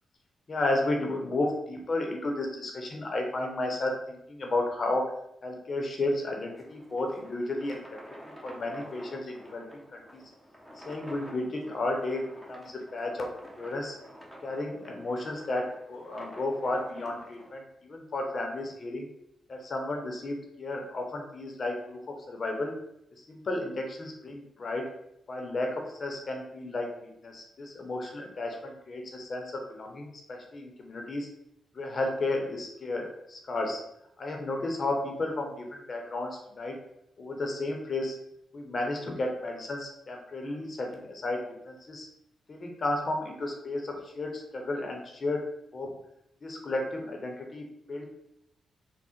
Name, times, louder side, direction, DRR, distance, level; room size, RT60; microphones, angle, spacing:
voice 1, 0.5-5.1 5.4-8.0 8.4-10.2 10.7-13.3 13.6-14.0 14.4-19.1 19.5-22.7 23.2-24.9 25.3-31.3 31.7-33.8 34.2-36.8 37.2-38.2 38.5-42.1 42.5-45.4 45.7-46.0 46.4-48.1, left 2 dB, 50° left, 2 dB, 0.7 m, -33 dB
sound 1, 6.3-17.5, equal, 10° right, 0.9 m, -49 dB
3.6 x 2.1 x 4.2 m, 0.79 s
cardioid pair, 70°, 0 cm